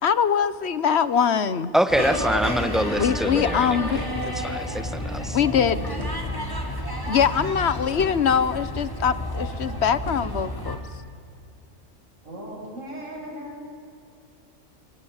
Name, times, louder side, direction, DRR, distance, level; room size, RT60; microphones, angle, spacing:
voice 1, 0.0-1.7 2.9-4.0 5.3-5.8 7.1-10.8, left 7 dB, 55° left, 15 dB, 1.2 m, -22 dB
voice 2, 1.7-4.1 4.3-5.4, equal, ahead, 10 dB, 1.2 m, -25 dB
sound 1, 1.9-10.8, equal, 15° left, 3.5 m, -30 dB
sound 2, 1.9-2.3 3.5-3.6 3.9-4.7 6.0-6.8 7.5-8.4 10.0-10.7, right 1 dB, 55° right, 3.1 m, -40 dB
voice 3, 5.3-5.9 12.2-13.6, equal, 75° right, -3 dB, 7.4 m, -38 dB
26.5 x 24.5 x 8.9 m, 2.4 s
omnidirectional pair, 1.4 m